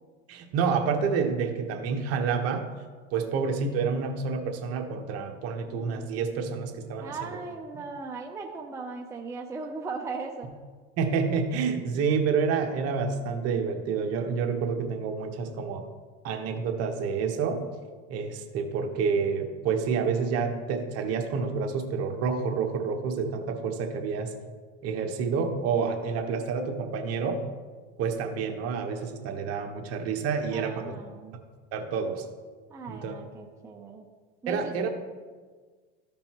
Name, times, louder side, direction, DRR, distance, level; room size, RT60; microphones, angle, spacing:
voice 1, 0.3-2.6 3.1-7.4 11.0-15.8 16.2-17.6 18.1-24.3 24.8-27.4 28.0-30.9 31.7-32.2 32.9-33.1 34.5-34.9, right 5 dB, 50° right, 3 dB, 1.2 m, -28 dB
voice 2, 7.0-10.5 30.5-31.4 32.7-34.1 34.4-34.7, right 4 dB, 10° right, 1 dB, 0.5 m, -38 dB
14.0 x 5.3 x 3.0 m, 1.5 s
supercardioid pair, 125°, 32 cm